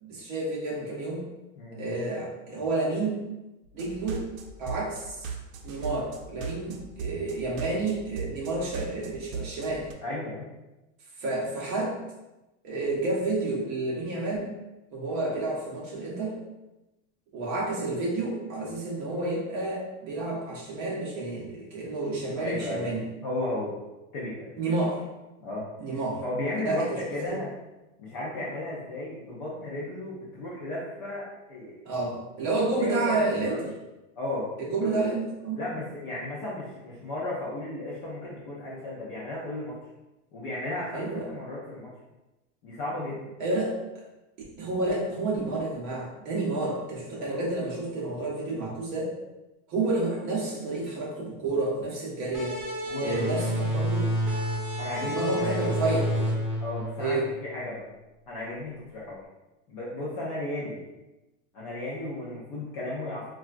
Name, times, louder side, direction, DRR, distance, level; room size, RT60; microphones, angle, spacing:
voice 1, 0.0-1.2 1.7-3.2 3.7-4.3 4.6-5.2 5.6-9.9 11.2-12.0 12.6-14.5 14.9-16.4 17.3-23.1 24.6-25.0 25.8-26.2 26.6-27.4 31.8-33.7 34.6-35.6 40.9-41.3 43.4-43.8 44.4-49.1 49.7-52.6 53.0-54.1 55.0-56.3 57.0-57.3, right 2 dB, 40° right, -3 dB, 0.8 m, -30 dB
sound 1, 3.7-9.9, right 5 dB, 90° right, 0.6 m, -38 dB
voice 2, 10.0-10.5 22.4-22.9 23.2-23.8 24.1-24.5 25.4-25.7 26.2-27.5 28.0-31.8 32.8-33.6 34.2-35.0 35.6-39.7 40.3-41.9 42.6-43.3 47.1-47.3 52.9-53.4 54.8-55.6 56.6-57.8 58.3-59.2 59.7-60.8 61.5-63.3, left 1 dB, 30° left, -6 dB, 0.4 m, -34 dB
sound 2, 52.3-57.6, equal, 20° right, 1.5 m, -29 dB
3.7 x 2.3 x 2.4 m, 1.0 s
supercardioid pair, 170°, 39 cm